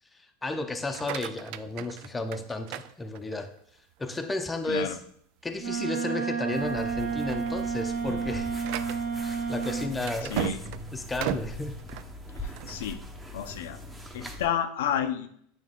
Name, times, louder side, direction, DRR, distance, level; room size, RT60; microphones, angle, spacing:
voice 1, 0.4-3.5 4.0-5.0 5.4-8.6 9.2-10.5 10.9-11.8, left 2 dB, 10° left, 6 dB, 0.6 m, -33 dB
sound 1, 0.8-3.6 4.1-4.5 5.0-5.1 5.5-5.7 6.3-6.6 7.0-12.8, right 13 dB, 60° right, 0.3 m, -37 dB
voice 2, 4.7-5.0 10.3-10.6 12.4-13.0 13.3-13.8 14.1-15.3, left 9 dB, 80° left, 8 dB, 0.6 m, -30 dB
Wind instrument woodwind instrument, 5.6-10.0, right 6 dB, 75° right, 2.1 m, -31 dB
sound 2, 6.5-14.5, equal, 10° right, 0.9 m, -41 dB
8.5 x 3.4 x 3.6 m, 0.65 s
supercardioid pair, 125°, 0 cm